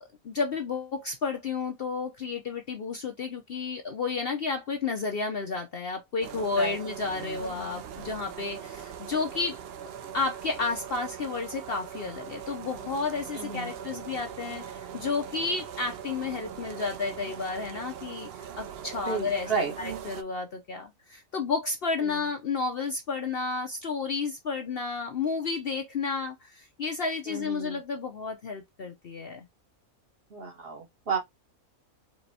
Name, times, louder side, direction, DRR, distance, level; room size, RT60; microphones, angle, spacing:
voice 1, 0.0-9.6 10.1-29.5, left 4 dB, 50° left, 0.8 m, -32 dB
sound 1, 6.2-20.2, right 8 dB, 65° right, 0.6 m, -41 dB
voice 2, 13.3-13.7 19.0-19.7 22.0-22.3 27.3-27.8 30.3-31.2, right 5 dB, 45° right, 1.4 m, -32 dB
4.6 x 3.0 x 2.7 m
omnidirectional pair, 1.5 m